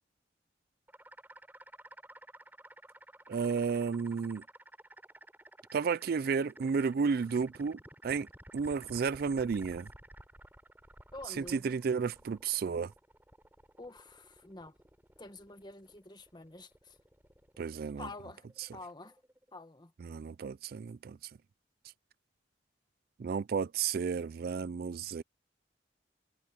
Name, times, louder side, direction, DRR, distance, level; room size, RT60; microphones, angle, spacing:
sound 1, 0.9-19.6, right 1 dB, 10° right, 4.2 m, -55 dB
voice 1, 3.3-4.4 5.7-8.3 8.5-9.9 11.4-12.9 17.6-18.1 20.0-21.2 23.2-25.2, right 5 dB, 55° right, 0.4 m, -32 dB
voice 2, 11.1-11.6 13.8-14.8 15.2-17.0 17.9-19.2 19.5-19.9, left 2 dB, 25° left, 1.5 m, -48 dB
head